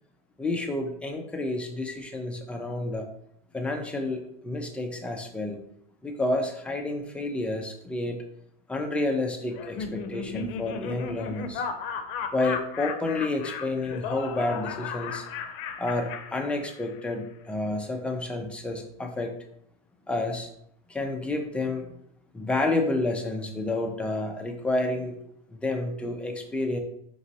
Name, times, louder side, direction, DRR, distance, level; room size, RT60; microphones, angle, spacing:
voice 1, 0.4-3.1 3.5-5.6 6.0-8.2 8.7-11.6 12.3-15.3 15.8-19.3 20.1-20.5 20.9-22.0 22.3-25.2 25.5-26.8, left 2 dB, 5° left, 3 dB, 0.3 m, -30 dB
Laughter, 9.5-17.0, left 5 dB, 75° left, 0.6 m, -35 dB
4.9 x 3.0 x 2.7 m, 0.71 s
supercardioid pair, 135°, 29 cm